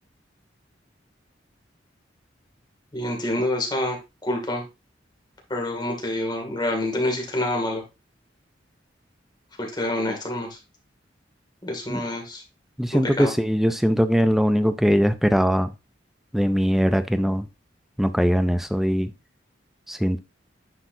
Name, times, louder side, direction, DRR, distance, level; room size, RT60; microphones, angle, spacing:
voice 1, 2.9-4.6 5.5-7.8 9.6-10.6 11.6-12.4 12.9-13.3, left 1 dB, 25° left, 2.2 m, -27 dB
voice 2, 12.8-15.7 16.3-17.5 18.0-19.1 19.9-20.2, equal, ahead, 0.5 m, -21 dB
9.8 x 4.5 x 2.7 m
head